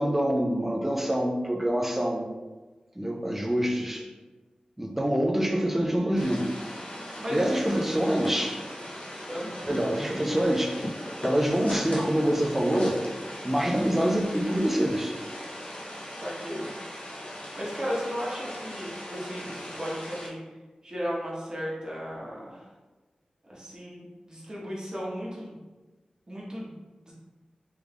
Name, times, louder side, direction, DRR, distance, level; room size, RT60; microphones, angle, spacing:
voice 1, 0.0-2.3 3.0-4.1 4.8-6.5 7.3-8.6 9.7-13.0 13.4-15.2, equal, 10° right, 1 dB, 0.4 m, -26 dB
sound 1, 6.2-20.3, equal, 65° left, 0.6 m, -39 dB
voice 2, 7.2-7.8 9.3-9.6 16.1-16.7 17.5-20.4 20.8-22.7 23.5-25.6 26.3-26.7 27.1-27.2, equal, 30° right, -5 dB, 1.0 m, -35 dB
3.4 x 2.3 x 3.4 m, 1.2 s
wide cardioid pair, 90°, 2 cm